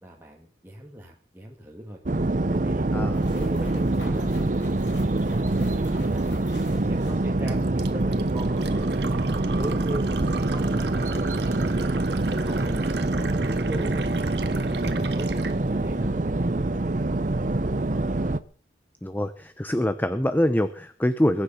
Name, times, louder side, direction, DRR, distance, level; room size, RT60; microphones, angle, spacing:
voice 1, 0.0-2.0 2.5-2.9 3.3-6.3 6.7-9.3 9.5-10.1 10.5-12.0 12.2-14.0 14.5-17.0 17.3-18.3, right 1 dB, 15° right, -1 dB, 2.1 m, -40 dB
sound 1, 2.1-18.4, right 2 dB, 45° right, 0.7 m, -25 dB
sound 2, 3.1-7.8 8.0-8.1 11.1-11.2 11.6-11.7 12.0-12.7, left 1 dB, 80° left, 7.4 m, -45 dB
Fill (with liquid), 7.5-15.6, right 5 dB, 70° right, 1.6 m, -39 dB
voice 2, 19.0-21.4, left 1 dB, 10° left, 11 dB, 0.8 m, -24 dB
22.0 x 10.0 x 5.7 m, 0.43 s
head